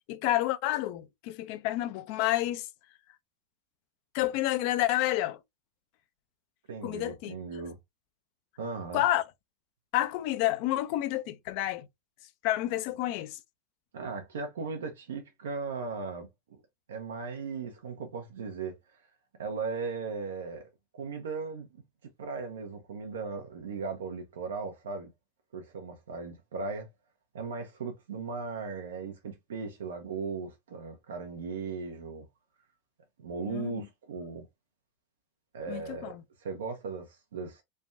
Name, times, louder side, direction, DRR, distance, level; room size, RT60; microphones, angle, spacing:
voice 1, 0.1-2.7 4.1-5.4 6.8-7.3 8.9-9.2 9.9-11.9 12.4-13.4 33.5-33.9 35.7-36.2, left 15 dB, 60° left, 0.5 m, -29 dB
voice 2, 6.7-7.8 8.6-9.0 13.9-16.3 16.9-19.0 19.4-20.6 20.9-21.7 22.2-25.1 25.5-26.9 27.3-32.3 33.2-34.5 35.5-37.6, right 4 dB, 85° right, 0.7 m, -37 dB
3.3 x 2.2 x 2.6 m
hypercardioid pair, 110°, 0 cm